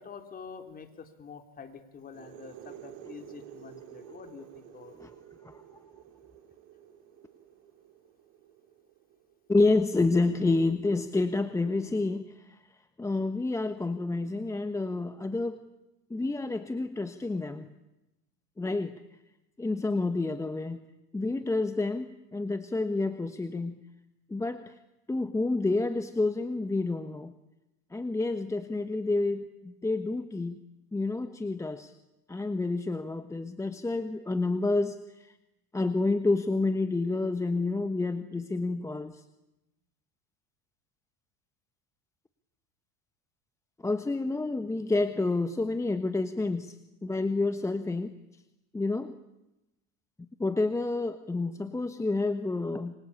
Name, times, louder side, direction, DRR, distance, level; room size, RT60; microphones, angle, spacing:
voice 1, 0.0-5.0, left 6 dB, 30° left, 7 dB, 3.7 m, -47 dB
sound 1, 2.0-9.5, right 10 dB, 70° right, 4.1 m, -51 dB
voice 2, 9.5-12.6 13.0-15.6 16.1-17.7 18.6-18.9 19.6-20.8 21.1-23.8 24.3-24.7 25.1-27.3 27.9-30.5 30.9-31.9 32.3-35.4 35.7-39.2 43.8-46.8 47.0-48.1 48.7-49.1 50.4-52.9, left 3 dB, 10° left, 9 dB, 1.3 m, -29 dB
28.5 x 23.5 x 8.6 m, 0.96 s
supercardioid pair, 115°, 29 cm